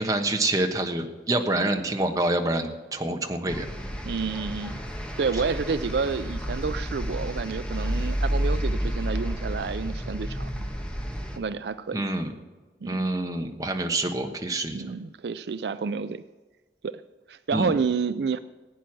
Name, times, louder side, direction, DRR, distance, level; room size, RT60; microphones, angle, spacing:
voice 1, 0.0-3.7 8.0-8.1 11.9-12.3 12.8-14.8 17.5-17.7, right 2 dB, 20° right, 4 dB, 1.2 m, -27 dB
sound 1, 3.5-11.4, equal, 5° left, 1.3 m, -30 dB
voice 2, 4.0-4.8 5.2-10.7 11.4-12.1 12.8-13.1 14.7-16.2 16.8-17.0 17.3-18.4, right 5 dB, 65° right, 13 dB, 0.4 m, -29 dB
16.5 x 9.2 x 6.2 m, 1.3 s
head